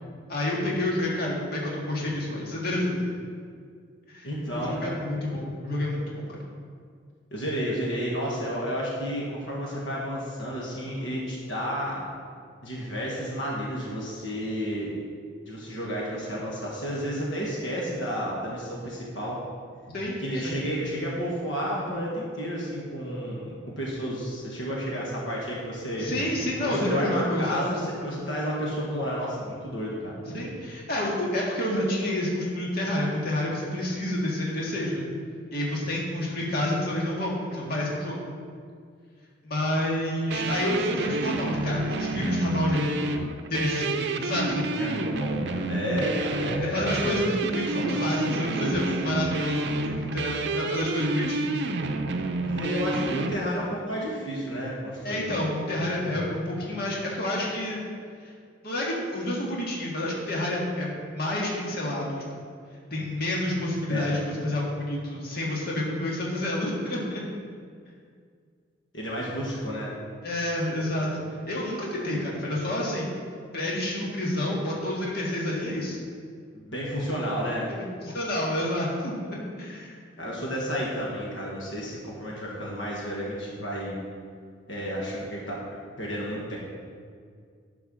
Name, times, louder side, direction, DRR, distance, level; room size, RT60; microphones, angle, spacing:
voice 1, 0.3-3.1 4.1-4.3 4.7-6.4 19.9-20.2 20.4-20.6 26.0-27.7 30.2-35.1 35.5-38.2 39.4-43.2 43.5-44.6 46.6-51.6 55.0-57.8 58.6-62.2 62.9-67.2 70.2-73.1 73.5-76.0 77.7-79.1 79.6-80.0, left 1 dB, 55° left, -4 dB, 1.8 m, -29 dB
voice 2, 4.2-5.0 7.3-12.0 12.6-14.9 15.5-19.4 20.2-26.1 26.6-30.1 44.8-47.3 47.6-48.0 48.5-48.9 52.4-55.4 63.9-64.1 68.9-69.9 75.6-75.7 76.5-77.7 80.2-84.0 84.7-85.6 86.0-86.6, equal, 75° left, -4 dB, 1.7 m, -31 dB
sound 1, 40.3-53.4, right 3 dB, 60° right, 0.5 m, -29 dB
10.0 x 4.7 x 6.2 m, 2.1 s
head